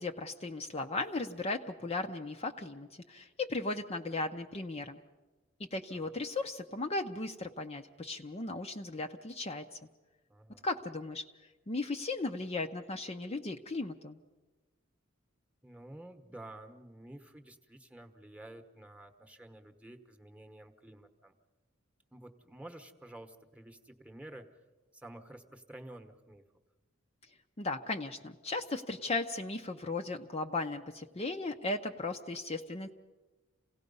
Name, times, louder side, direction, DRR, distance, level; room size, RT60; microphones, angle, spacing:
voice 1, 0.0-5.0 5.6-9.8 10.6-11.3 11.7-14.2 27.6-32.9, left 2 dB, 30° left, 5 dB, 0.6 m, -36 dB
voice 2, 10.3-10.7 15.6-21.3 22.1-24.5 24.9-26.4, right 1 dB, 5° right, 6 dB, 1.1 m, -51 dB
28.0 x 17.5 x 5.4 m, 1.2 s
head